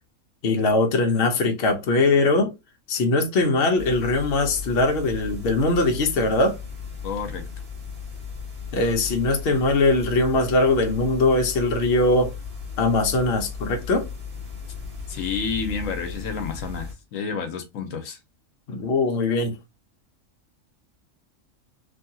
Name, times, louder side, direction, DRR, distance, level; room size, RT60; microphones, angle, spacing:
voice 1, 0.4-2.5 2.9-6.6 8.7-12.3 12.8-14.1 18.7-19.5, left 2 dB, 55° left, 0.8 m, -21 dB
sound 1, 3.8-16.9, left 5 dB, 40° right, 1.4 m, -36 dB
voice 2, 7.0-7.5 15.1-18.2, left 5 dB, 75° left, 1.0 m, -30 dB
3.1 x 2.7 x 2.6 m
omnidirectional pair, 1.4 m